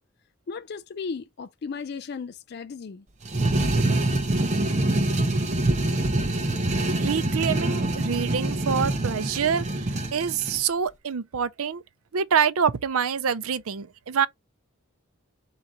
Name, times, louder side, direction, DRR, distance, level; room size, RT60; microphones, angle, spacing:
voice 1, 0.5-3.0, left 5 dB, 45° left, 0.4 m, -35 dB
sound 1, 3.2-10.6, right 2 dB, 30° right, 0.8 m, -25 dB
voice 2, 6.9-11.8 12.1-14.3, right 7 dB, 80° right, 0.5 m, -26 dB
3.7 x 2.9 x 4.4 m
head